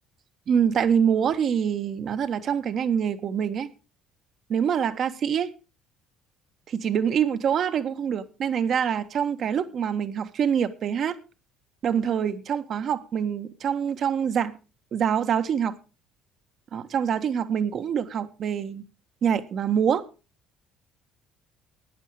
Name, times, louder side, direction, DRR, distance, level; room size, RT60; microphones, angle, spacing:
voice 1, 0.5-3.7 4.5-5.5 6.7-11.2 11.8-14.6 14.9-15.8 16.7-18.8 19.2-20.0, right 8 dB, 55° right, 1.5 m, -25 dB
14.5 x 9.9 x 4.9 m
hypercardioid pair, 70°, 0 cm